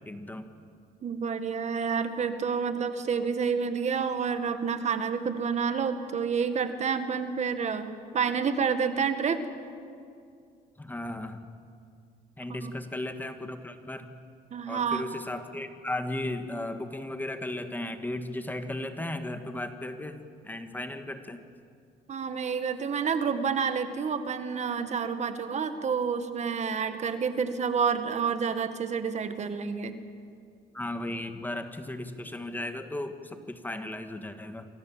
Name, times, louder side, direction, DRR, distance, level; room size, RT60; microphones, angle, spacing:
voice 1, 0.1-0.5 10.8-11.5 12.4-14.1 14.7-21.4 30.7-34.7, left 1 dB, 10° left, 7 dB, 1.7 m, -36 dB
voice 2, 1.0-9.5 12.6-12.7 14.5-15.1 22.1-30.0, right 6 dB, 40° right, 9 dB, 1.8 m, -29 dB
28.5 x 23.5 x 7.5 m, 2.3 s
cardioid pair, 110°, 17 cm